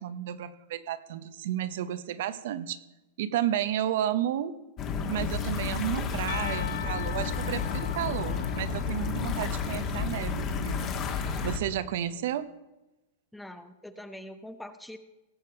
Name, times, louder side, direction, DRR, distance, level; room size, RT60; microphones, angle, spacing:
voice 1, 0.0-2.8 3.2-4.5 5.1-10.8 11.4-12.5, right 11 dB, 60° right, 14 dB, 0.8 m, -32 dB
sound 1, 4.8-11.6, left 5 dB, 25° left, 1.4 m, -31 dB
Percussion, 6.3-10.2, left 9 dB, 75° left, 0.9 m, -41 dB
voice 2, 13.3-15.0, left 1 dB, 5° left, 10 dB, 0.6 m, -43 dB
17.5 x 7.4 x 5.6 m, 1.0 s
supercardioid pair, 160°, 0 cm